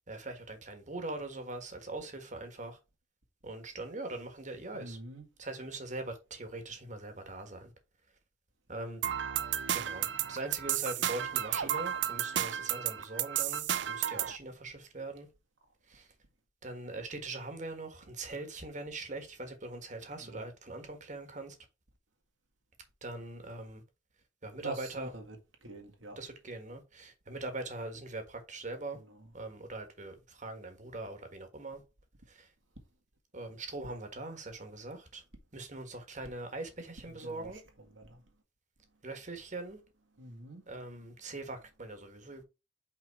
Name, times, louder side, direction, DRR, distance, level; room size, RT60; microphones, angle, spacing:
voice 1, 0.0-2.8 3.4-5.0 5.4-7.7 8.7-9.0 9.7-15.3 15.9-16.1 16.6-21.6 23.0-23.8 24.4-25.1 26.2-29.0 29.3-31.8 32.3-32.5 33.3-35.2 35.5-37.6 39.0-39.8 40.7-42.4, right 2 dB, 40° right, 1.6 m, -42 dB
voice 2, 4.7-5.3 20.2-20.4 24.6-25.4 25.6-26.2 29.1-29.3 37.2-37.6 37.9-38.2 40.2-40.6, right 2 dB, 90° right, 1.9 m, -45 dB
sound 1, 9.0-14.4, right 11 dB, 65° right, 0.5 m, -32 dB
5.6 x 3.8 x 4.7 m
head